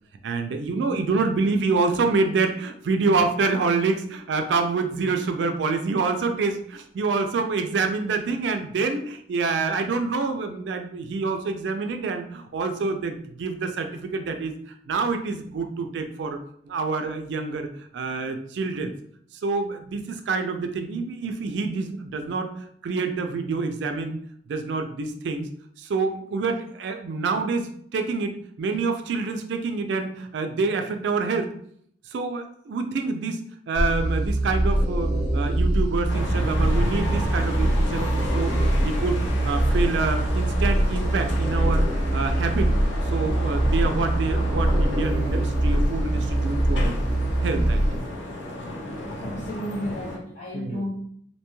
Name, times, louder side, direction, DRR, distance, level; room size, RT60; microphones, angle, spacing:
voice 1, 0.2-16.4 16.6-18.9 19.3-24.2 24.5-25.5 25.8-31.5 32.0-33.4 33.7-42.7 43.0-47.0 47.4-47.8 50.5-50.8, right 4 dB, 75° right, 6 dB, 0.3 m, -27 dB
sound 1, 33.8-48.0, right 1 dB, 5° right, 0.6 m, -23 dB
sound 2, 36.1-50.2, left 1 dB, 85° left, 0.6 m, -33 dB
voice 2, 49.2-50.9, equal, 40° left, -6 dB, 0.5 m, -32 dB
2.7 x 2.2 x 3.0 m, 0.65 s
head